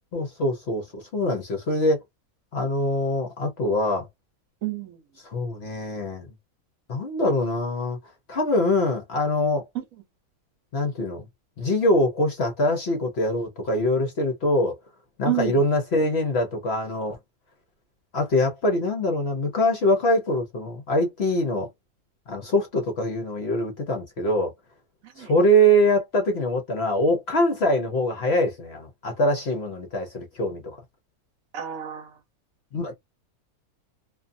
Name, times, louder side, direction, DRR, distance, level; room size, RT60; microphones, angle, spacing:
voice 1, 0.1-2.0 2.5-4.1 5.2-6.3 6.9-8.0 8.3-9.6 10.7-11.2 11.6-14.8 15.2-17.2 18.1-21.7 22.3-24.5 25.2-30.6 32.7-32.9, equal, 55° left, 0.8 m, -23 dB
voice 2, 4.6-5.0 9.7-9.8 15.3-15.6 25.2-25.3 31.5-32.1, right 14 dB, 70° right, 1.1 m, -29 dB
2.5 x 2.5 x 2.5 m
omnidirectional pair, 1.6 m